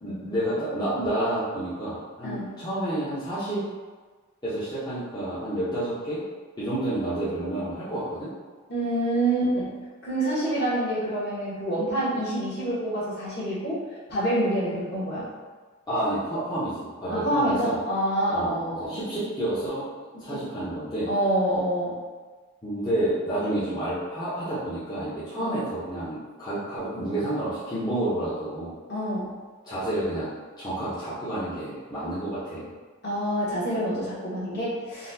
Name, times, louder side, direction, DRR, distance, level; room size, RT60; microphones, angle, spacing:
voice 1, 0.0-3.6 4.4-6.2 6.6-8.3 15.9-17.8 18.3-19.9 20.2-21.1 22.6-28.7 29.6-30.3 30.6-32.7, right 1 dB, 20° left, -12 dB, 0.7 m, -29 dB
voice 2, 8.7-9.7 10.0-13.8 14.1-15.2 17.1-19.0 21.1-21.9 25.3-25.6 28.9-29.3 33.0-35.1, right 1 dB, 50° left, -9 dB, 1.2 m, -26 dB
3.9 x 2.2 x 2.6 m, 1.4 s
head